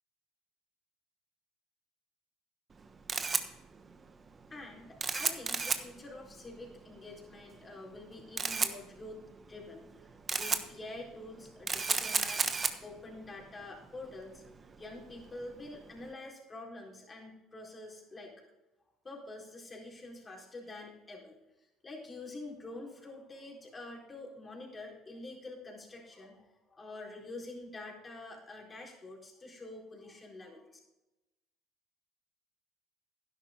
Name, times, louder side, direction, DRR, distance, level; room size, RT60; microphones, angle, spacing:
Camera, 2.7-16.1, right 4 dB, 30° right, 1.1 m, -36 dB
voice 1, 4.5-9.2 9.5-9.8 10.4-14.4 14.8-18.3 19.0-21.4 21.8-30.7, left 2 dB, 25° left, -1 dB, 4.3 m, -47 dB
12.0 x 10.5 x 3.8 m, 1.0 s
hypercardioid pair, 70°, 0 cm